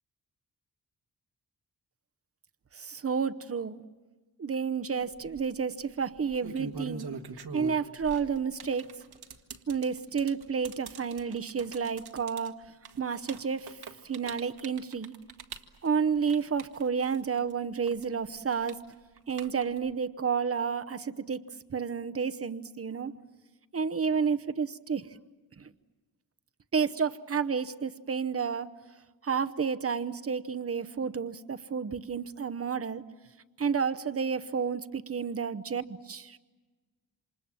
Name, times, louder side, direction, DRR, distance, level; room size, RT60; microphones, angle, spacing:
voice 1, 2.7-3.8 4.4-7.1 7.5-8.9 9.7-12.5 13.0-13.8 14.0-15.1 15.8-18.8 19.3-21.4 21.7-23.1 23.7-25.1 25.6-25.7 26.7-28.7 29.2-33.0 33.6-36.4, right 6 dB, 35° right, 11 dB, 0.9 m, -30 dB
sound 1, 5.1-5.4 6.2-17.5 17.8-19.9, right 5 dB, 75° right, 1.6 m, -43 dB
28.0 x 26.5 x 7.4 m, 1.3 s
wide cardioid pair, 145°, 38 cm